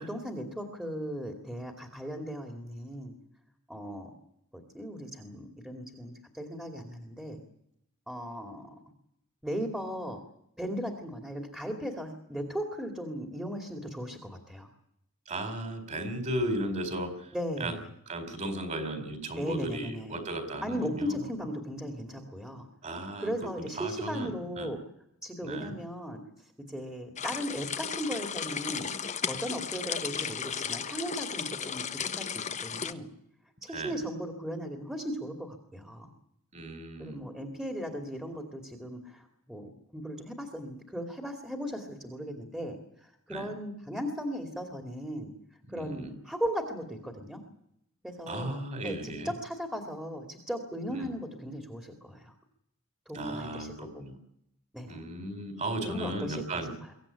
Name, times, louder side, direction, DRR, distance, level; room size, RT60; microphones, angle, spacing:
voice 1, 0.0-3.1 3.7-4.1 4.5-7.4 8.1-8.7 9.4-10.2 10.6-14.7 17.3-17.9 19.4-20.2 20.6-22.7 23.2-24.8 25.2-26.2 26.7-28.9 29.2-33.1 33.6-36.1 37.0-45.3 45.7-47.4 48.0-52.3 53.1-54.0 54.7-55.0 55.8-56.4 56.8-56.9, equal, 5° right, 4 dB, 2.5 m, -37 dB
voice 2, 15.3-17.3 17.6-17.7 18.1-21.2 22.8-23.3 23.6-24.8 25.4-25.7 33.7-33.9 36.5-37.3 43.3-43.5 45.7-46.1 48.3-49.3 50.9-51.1 53.1-54.2 54.9-56.7, right 1 dB, 35° right, 8 dB, 4.4 m, -35 dB
sound 1, 27.2-32.9, left 7 dB, 35° left, 1.2 m, -35 dB
24.0 x 16.0 x 10.0 m, 0.77 s
head